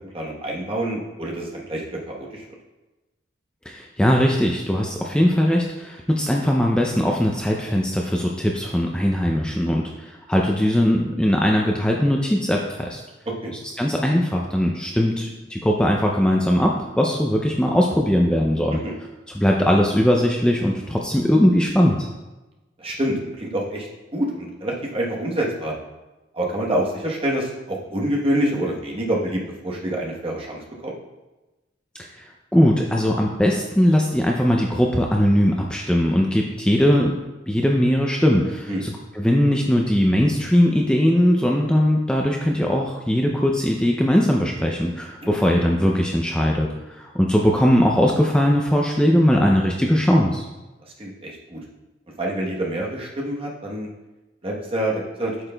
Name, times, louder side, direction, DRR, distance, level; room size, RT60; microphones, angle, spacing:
voice 1, 0.1-2.4 13.3-13.5 18.7-18.9 22.8-25.7 26.3-30.9 38.7-38.8 45.2-45.4 51.0-51.6 52.2-53.9 54.4-55.3, right 1 dB, 30° right, -2 dB, 1.1 m, -27 dB
voice 2, 3.7-13.0 13.8-18.8 19.3-22.1 32.1-37.2 37.5-50.4, equal, 5° left, 0 dB, 0.4 m, -20 dB
8.6 x 6.3 x 2.2 m, 1.1 s
head